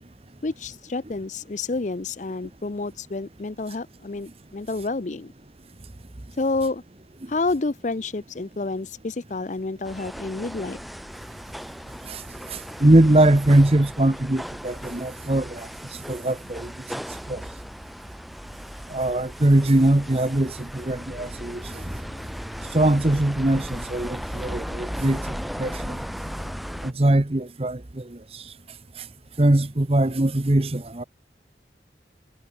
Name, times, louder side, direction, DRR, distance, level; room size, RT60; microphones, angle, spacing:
voice 1, 0.4-5.3 6.4-6.8 7.3-10.8, left 3 dB, 45° left, 0.6 m, -29 dB
sound 1, 9.8-26.9, equal, ahead, 0.7 m, -36 dB
voice 2, 12.5-15.7 16.1-16.7 17.3-17.4 18.9-21.9 22.7-26.0 26.8-28.4 29.4-31.0, right 1 dB, 35° right, 0.9 m, -21 dB
sound 2, 21.1-27.2, right 1 dB, 75° right, 6.2 m, -51 dB
head